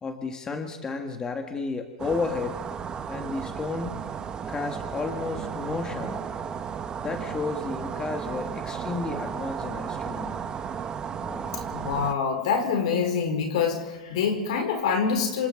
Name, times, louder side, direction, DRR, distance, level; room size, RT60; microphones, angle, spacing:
voice 1, 0.0-2.6 3.1-4.0 4.5-6.3 7.0-10.5 11.2-11.7, left 4 dB, 20° left, 5 dB, 2.0 m, -32 dB
sound 1, 2.0-12.1, right 7 dB, 25° right, 1.4 m, -34 dB
voice 2, 11.7-15.5, left 6 dB, 70° left, 4 dB, 4.8 m, -25 dB
27.0 x 27.0 x 3.9 m, 1.2 s
hypercardioid pair, 105°, 3 cm